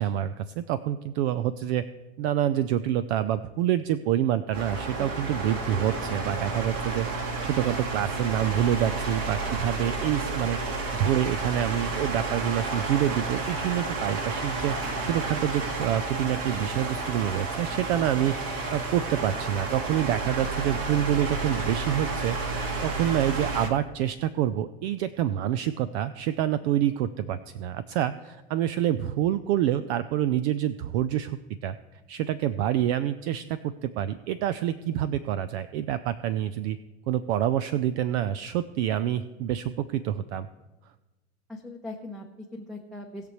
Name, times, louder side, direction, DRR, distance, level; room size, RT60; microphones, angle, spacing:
voice 1, 0.0-1.8 2.2-14.7 15.0-31.8 32.1-36.8 37.1-40.5, right 11 dB, 70° right, 13 dB, 0.6 m, -27 dB
sound 1, 4.5-23.7, right 3 dB, 45° right, 1.8 m, -31 dB
voice 2, 41.5-43.3, left 2 dB, ahead, 3 dB, 0.7 m, -41 dB
19.5 x 6.7 x 3.1 m, 1.1 s
supercardioid pair, 140°, 34 cm